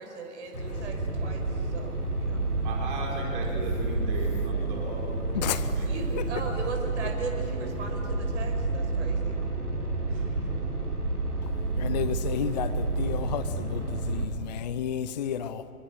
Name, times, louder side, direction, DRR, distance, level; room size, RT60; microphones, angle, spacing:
voice 1, 0.0-2.4 5.8-9.4, right 3 dB, 50° right, 4 dB, 5.3 m, -38 dB
sound 1, 0.5-14.2, right 3 dB, 85° right, 3.4 m, -30 dB
voice 2, 2.6-5.2 5.5-5.9 10.1-10.3, right 2 dB, 35° right, -1 dB, 4.8 m, -37 dB
voice 3, 5.3-5.7 6.6-6.7 11.8-15.6, left 9 dB, 30° left, 14 dB, 0.6 m, -32 dB
26.0 x 24.5 x 6.6 m, 2.8 s
figure-of-eight pair, 120°, 44 cm